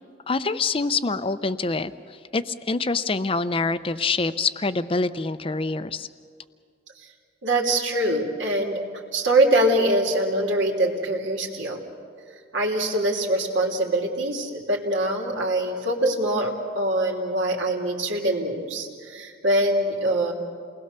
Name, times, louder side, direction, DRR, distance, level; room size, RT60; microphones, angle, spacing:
voice 1, 0.3-6.1, left 3 dB, 30° left, 12 dB, 0.6 m, -26 dB
voice 2, 7.4-8.8 9.1-11.8 12.5-20.3, right 1 dB, 80° right, 0 dB, 3.2 m, -23 dB
29.0 x 20.0 x 6.8 m, 2.2 s
head